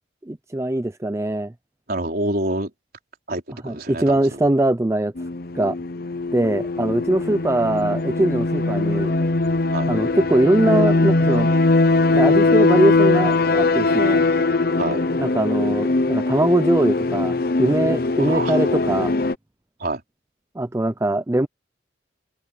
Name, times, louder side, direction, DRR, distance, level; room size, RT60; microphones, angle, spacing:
voice 1, 0.2-1.5 3.6-5.1 5.5-5.8 6.3-9.2 9.9-11.5 12.2-14.3 15.2-19.2 20.6-21.5, right 1 dB, 15° right, 0.4 m, -21 dB
voice 2, 1.9-2.7 3.3-4.4 9.7-9.9 14.8-15.0 18.3-18.6 19.8-20.0, right 1 dB, 50° right, 4.6 m, -27 dB
sound 1, 5.2-19.3, left 3 dB, 55° left, 0.8 m, -20 dB
head